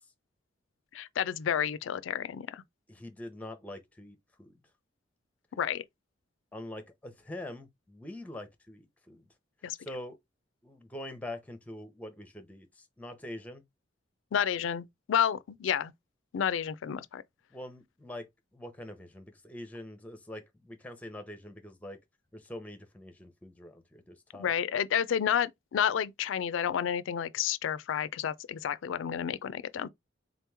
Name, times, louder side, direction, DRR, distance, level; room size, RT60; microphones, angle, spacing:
voice 1, 0.9-2.6 5.6-5.8 9.6-9.8 14.3-15.9 16.3-17.2 24.4-29.9, left 8 dB, 85° left, 0.4 m, -30 dB
voice 2, 2.9-4.5 6.5-9.3 9.8-10.2 10.6-13.6 17.5-22.0 22.3-24.5, left 1 dB, 10° left, 0.6 m, -44 dB
3.9 x 3.0 x 3.3 m
head